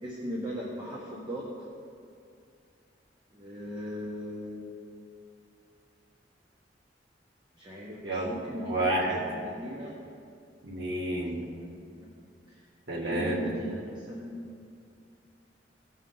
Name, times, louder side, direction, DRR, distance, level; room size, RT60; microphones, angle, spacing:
voice 1, 0.0-1.5 3.3-4.8 7.6-10.0 11.6-12.1 12.5-12.6 12.9-14.7, equal, 25° right, -4 dB, 1.2 m, -38 dB
voice 2, 8.6-9.2 10.6-11.4 12.9-13.4, right 1 dB, 60° right, -4 dB, 2.0 m, -29 dB
16.5 x 5.5 x 3.9 m, 2.4 s
head